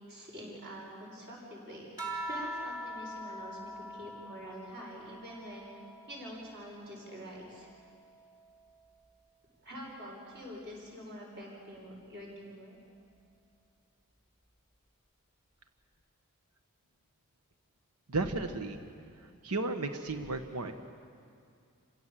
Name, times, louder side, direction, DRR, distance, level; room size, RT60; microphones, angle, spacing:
voice 1, 0.1-5.7 6.1-7.7 9.6-12.8, equal, 50° right, -3 dB, 7.3 m, -46 dB
sound 1, 2.0-6.8 7.2-9.0 10.2-10.7, equal, 20° right, 3.2 m, -44 dB
voice 2, 18.1-18.8 19.4-20.7, right 3 dB, 90° right, 7 dB, 1.2 m, -33 dB
27.5 x 16.5 x 7.6 m, 2.3 s
head